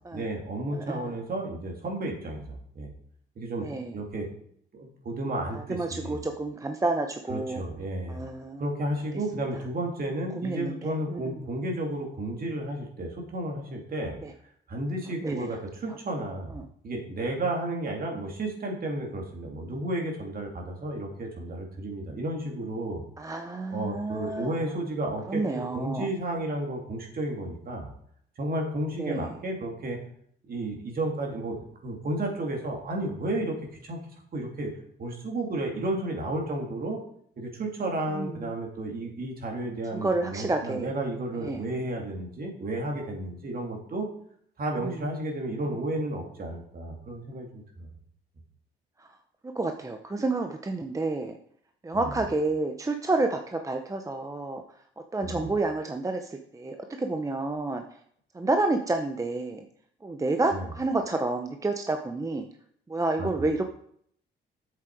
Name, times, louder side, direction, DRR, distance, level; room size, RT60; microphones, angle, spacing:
voice 1, 0.1-2.9 3.4-3.7 3.9-4.3 4.7-6.2 7.3-8.2 8.6-14.1 14.7-23.0 23.7-27.9 28.4-30.0 30.5-33.6 33.8-34.0 34.3-34.7 35.0-37.0 37.4-44.1 44.6-47.9 51.9-52.2 55.2-55.5 60.5-60.7 63.2-63.7, right 1 dB, 45° right, 1 dB, 2.5 m, -32 dB
voice 2, 0.7-1.0 3.6-3.9 5.5-7.6 8.1-8.6 10.4-11.4 14.2-14.3 15.2-15.6 15.9-16.0 16.5-16.6 23.2-24.6 25.3-26.1 29.0-29.3 38.1-38.4 39.9-40.9 41.4-41.6 44.8-45.0 49.0-49.1 49.5-51.4 51.8-54.6 55.0-57.8 58.3-59.6 60.0-62.5 62.9-63.6, right 2 dB, 15° right, 5 dB, 0.7 m, -29 dB
7.7 x 7.4 x 4.6 m, 0.64 s
cardioid pair, 90°, 20 cm